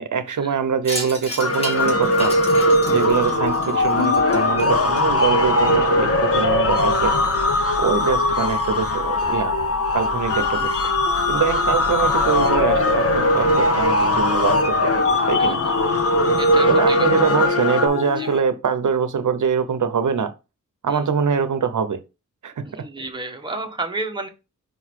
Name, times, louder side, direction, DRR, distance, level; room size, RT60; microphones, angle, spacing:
voice 1, 0.0-2.3 2.9-7.1 7.8-9.6 9.9-10.7 11.3-14.9 15.3-15.6 16.7-20.3 20.8-22.0 22.4-22.6, right 6 dB, 70° right, 0.8 m, -23 dB
Wind chime, 0.8-5.5, equal, 20° left, 2.0 m, -34 dB
sound 1, 1.4-17.9, left 1 dB, 45° left, 1.1 m, -20 dB
voice 2, 2.8-3.1 8.2-8.4 10.4-10.7 15.4-15.8 16.4-17.1 18.2-18.3 20.9-21.1 22.7-24.3, right 2 dB, 15° right, 1.2 m, -32 dB
sound 2, 4.0-18.4, left 7 dB, 75° left, 0.6 m, -28 dB
5.2 x 3.9 x 4.6 m
wide cardioid pair, 100°, 32 cm